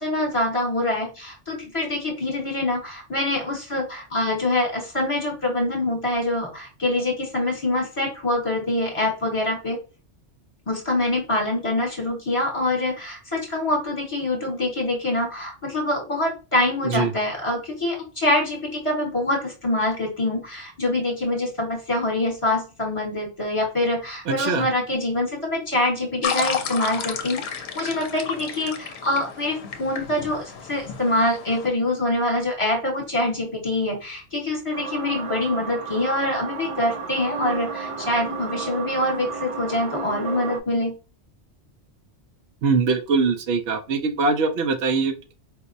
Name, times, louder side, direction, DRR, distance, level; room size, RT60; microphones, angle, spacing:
voice 1, 0.0-9.8 10.7-41.0, left 1 dB, 30° left, -1 dB, 1.1 m, -25 dB
voice 2, 24.3-24.7 42.6-45.3, right 4 dB, 75° right, 7 dB, 0.9 m, -22 dB
sound 1, 26.2-31.7, left 6 dB, 70° left, 0.8 m, -32 dB
sound 2, 34.7-40.6, right 4 dB, 60° right, 0.3 m, -32 dB
4.3 x 2.1 x 2.5 m, 0.32 s
omnidirectional pair, 1.2 m